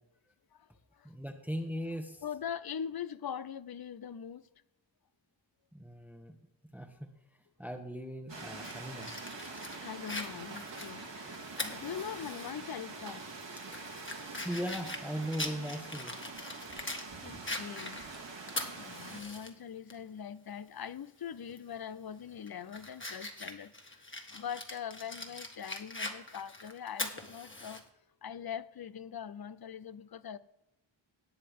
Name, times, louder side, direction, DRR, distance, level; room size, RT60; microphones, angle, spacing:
voice 1, 1.0-2.2 5.7-6.3 6.7-7.1 7.6-9.6 14.2-16.1, equal, 5° right, 1.2 m, -39 dB
voice 2, 2.2-4.4 9.8-13.2 17.2-18.0 18.8-23.7 24.3-27.8 28.2-30.4, left 8 dB, 50° left, 0.6 m, -42 dB
sound 1, 8.3-19.2, right 3 dB, 65° right, 2.3 m, -45 dB
Fire, 8.6-12.5 12.9-13.0 13.5-17.1 17.5-19.5 19.9-20.0 21.5-21.7 22.2-27.8, left 2 dB, 25° left, 1.7 m, -42 dB
18.5 x 7.6 x 3.6 m
wide cardioid pair, 50°, 46 cm